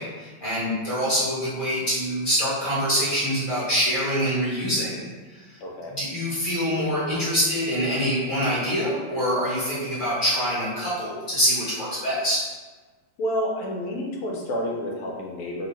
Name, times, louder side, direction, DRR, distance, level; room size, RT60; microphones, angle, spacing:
voice 1, 0.0-5.1 6.0-12.4, equal, 30° left, -10 dB, 1.2 m, -25 dB
voice 2, 5.6-6.0 13.2-15.7, equal, 90° left, -1 dB, 1.6 m, -29 dB
3.4 x 2.7 x 3.0 m, 1.3 s
omnidirectional pair, 2.4 m